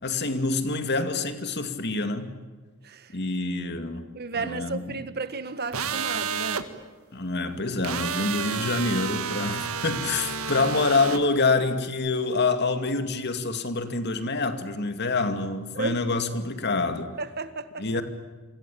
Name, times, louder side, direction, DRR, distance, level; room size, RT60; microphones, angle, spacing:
voice 1, 0.0-2.3 3.1-4.1 4.4-5.0 7.1-17.1 17.8-18.0, left 3 dB, 50° left, 2.4 m, -26 dB
voice 2, 2.8-3.2 4.1-6.7 15.7-16.1 17.2-17.9, right 3 dB, 50° right, 1.5 m, -33 dB
sound 1, 5.7-6.6 7.8-11.2, right 6 dB, 85° right, 1.8 m, -30 dB
27.5 x 25.0 x 8.6 m
head